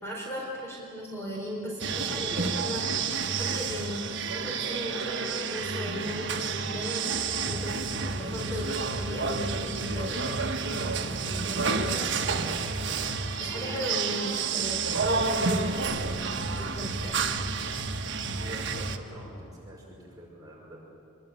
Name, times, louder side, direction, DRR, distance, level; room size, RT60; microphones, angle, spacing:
voice 1, 0.0-2.9 3.4-10.4 10.7-12.4 13.4-16.3 16.6-17.5, equal, 10° left, -3 dB, 4.3 m, -37 dB
sound 1, 1.8-19.0, right 4 dB, 55° right, 1.5 m, -30 dB
voice 2, 13.6-14.2 16.3-16.6 18.3-20.8, right 1 dB, 20° right, -4 dB, 6.7 m, -45 dB
26.5 x 22.5 x 9.1 m, 2.6 s
head